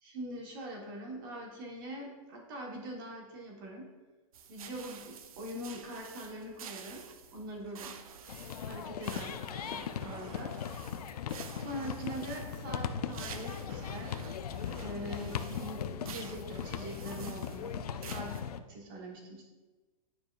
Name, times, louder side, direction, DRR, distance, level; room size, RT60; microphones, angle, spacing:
voice 1, 0.0-3.9 4.5-7.1 7.3-7.9 8.6-9.3 9.6-10.5 11.4-14.4 14.8-18.4 18.7-19.5, right 1 dB, 35° right, -1 dB, 1.4 m, -43 dB
sound 1, 4.3-18.4, right 7 dB, 70° right, 0.7 m, -50 dB
sound 2, 8.3-18.6, left 8 dB, 85° left, 0.5 m, -39 dB
9.2 x 4.7 x 2.5 m, 1.2 s
hypercardioid pair, 165°, 19 cm